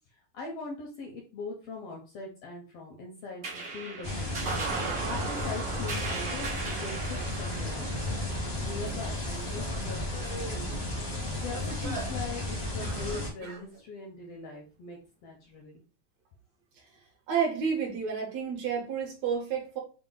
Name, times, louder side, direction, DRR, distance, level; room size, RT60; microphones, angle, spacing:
voice 1, 0.3-4.4 5.1-7.9 8.5-10.8 11.1-15.8, left 3 dB, 70° left, 0 dB, 1.5 m, -41 dB
sound 1, 3.4-10.2, right 4 dB, 85° right, 0.7 m, -37 dB
sound 2, 4.0-13.3, left 1 dB, 50° left, 0.7 m, -34 dB
sound 3, 5.7-13.8, right 3 dB, 55° right, 1.1 m, -46 dB
voice 2, 17.3-19.8, right 6 dB, 70° right, 0 dB, 2.0 m, -30 dB
5.0 x 2.0 x 3.7 m, 0.36 s
omnidirectional pair, 3.4 m